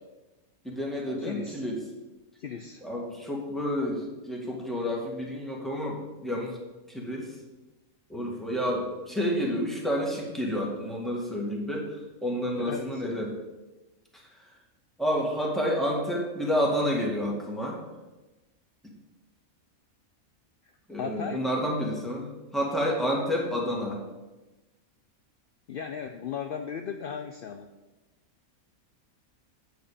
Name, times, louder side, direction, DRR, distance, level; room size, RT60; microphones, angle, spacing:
voice 1, 0.6-1.8 2.8-6.6 6.9-7.3 8.1-11.9 12.2-13.3 14.1-14.2 15.0-17.8 20.9-24.0, equal, ahead, -2 dB, 2.0 m, -29 dB
voice 2, 1.2-1.6 2.4-2.8 12.6-13.3 21.0-21.4 25.7-27.7, left 7 dB, 60° left, 6 dB, 0.6 m, -36 dB
8.7 x 7.9 x 5.0 m, 1.1 s
omnidirectional pair, 1.5 m